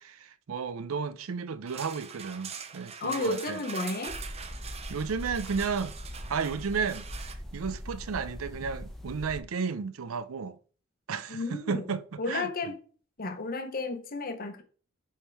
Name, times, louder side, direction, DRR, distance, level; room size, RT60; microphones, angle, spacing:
voice 1, 0.0-3.6 4.9-5.9 6.3-7.1 7.5-10.6 11.1-12.5, right 5 dB, 90° right, 0.5 m, -33 dB
sound 1, 1.7-7.3, right 6 dB, 30° right, 0.6 m, -43 dB
voice 2, 3.0-4.2 11.3-11.8 12.2-12.8 13.2-14.6, left 3 dB, 45° left, 0.9 m, -32 dB
sound 2, 4.1-9.4, equal, ahead, 0.9 m, -41 dB
7.1 x 3.7 x 4.6 m
head